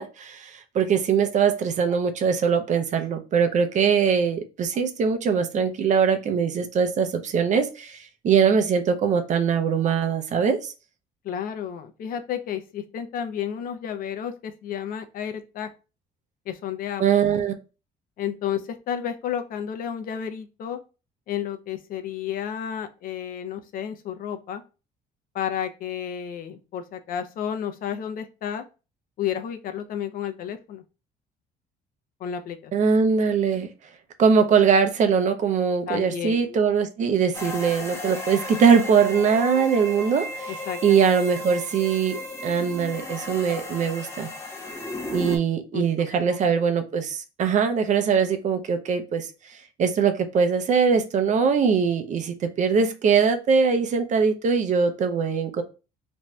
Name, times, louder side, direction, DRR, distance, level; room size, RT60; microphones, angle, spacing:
voice 1, 0.0-10.7 17.0-17.5 32.7-33.7 34.2-40.5 40.8-44.3 45.1-55.6, right 6 dB, 45° right, 0.5 m, -22 dB
voice 2, 11.2-15.7 16.5-17.0 18.2-20.8 21.3-24.6 25.3-28.6 29.2-30.8 32.2-32.7 35.9-36.7 40.5-41.0 45.7-46.2, left 9 dB, 55° left, 0.5 m, -31 dB
sound 1, 37.3-45.4, left 1 dB, 15° left, 0.7 m, -35 dB
2.6 x 2.2 x 3.0 m
cardioid pair, 110°, 17 cm